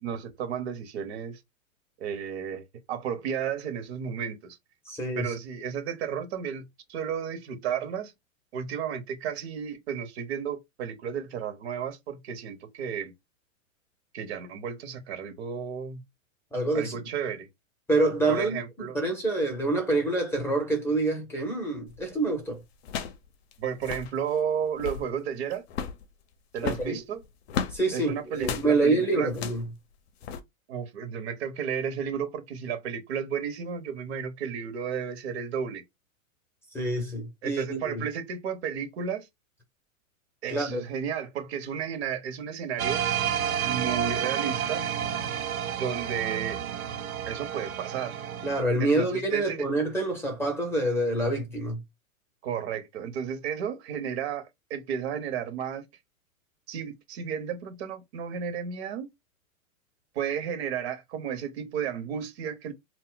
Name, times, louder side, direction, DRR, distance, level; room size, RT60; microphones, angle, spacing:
voice 1, 0.0-1.4 2.0-4.6 5.1-8.1 8.5-13.1 14.1-16.0 16.7-17.5 18.3-19.0 23.6-25.6 26.5-27.2 27.9-29.3 30.7-35.8 37.4-39.3 40.4-43.0 43.6-44.9 45.8-46.6 47.3-48.2 48.8-49.6 52.4-55.9 56.7-59.1 60.1-62.7, right 7 dB, 50° right, 0.9 m, -33 dB
voice 2, 4.9-5.3 16.5-17.0 17.9-22.6 26.6-27.0 27.7-29.6 36.7-38.1 40.5-40.8 48.4-51.8, right 2 dB, 5° left, 0.7 m, -27 dB
sound 1, 21.9-22.1 22.8-23.3 23.5-23.6 23.8-24.1 24.6-25.1 25.7-26.0 26.6-27.8 28.4-28.7 29.3-29.7 30.2-30.4, left 7 dB, 50° left, 0.6 m, -34 dB
sound 2, 42.8-48.6, right 9 dB, 80° right, 0.7 m, -30 dB
2.3 x 2.0 x 3.8 m
hypercardioid pair, 120°, 42 cm